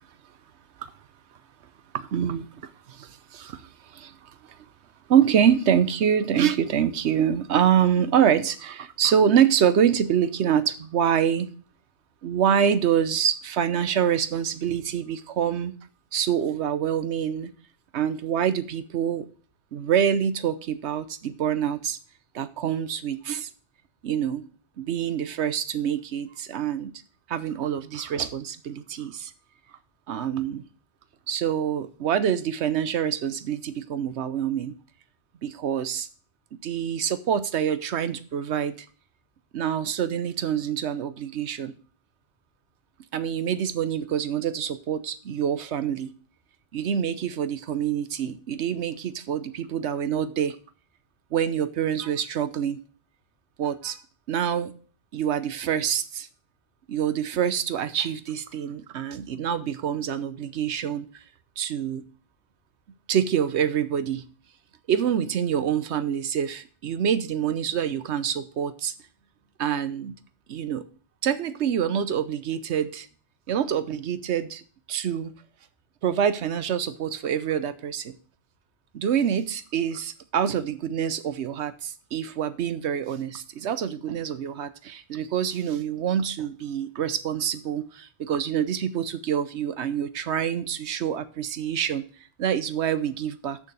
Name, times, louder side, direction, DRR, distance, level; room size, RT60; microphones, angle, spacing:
voice 1, 1.9-4.1 5.1-11.5 12.2-15.7 16.1-17.5 17.9-19.3 19.7-22.0 22.3-23.5 24.0-24.5 24.8-26.9 27.3-29.3 30.1-30.6 31.3-34.8 35.4-36.1 36.6-38.9 39.5-41.7 43.1-46.1 46.7-50.6 51.3-52.8 53.6-54.0 54.3-54.7 55.1-56.3 56.9-61.1 61.6-62.0 63.1-64.3 64.9-68.9 69.6-70.1 70.5-70.9 71.2-73.1 73.5-74.6 74.9-75.3 76.0-78.1 78.9-92.0 92.4-93.6, right 8 dB, 75° right, 1.0 m, -26 dB
6.7 x 6.2 x 7.5 m
omnidirectional pair, 1.2 m